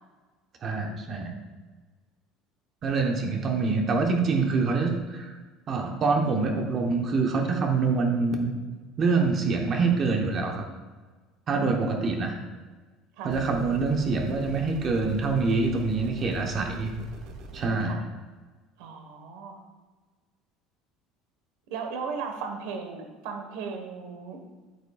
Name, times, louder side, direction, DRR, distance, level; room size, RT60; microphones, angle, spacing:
voice 1, 0.6-1.3 2.8-5.3 5.7-8.5 9.0-10.6 11.5-12.4 13.2-16.9 17.5-18.0, right 4 dB, 30° right, 2 dB, 0.9 m, -25 dB
voice 2, 11.5-12.2 13.2-13.3 17.8-18.0 18.8-19.6 21.7-24.4, right 5 dB, 85° right, 4 dB, 1.3 m, -36 dB
sound 1, 13.3-17.7, right 3 dB, 55° right, 1.0 m, -43 dB
9.6 x 8.9 x 2.4 m, 1.3 s
cardioid pair, 165°, 0 cm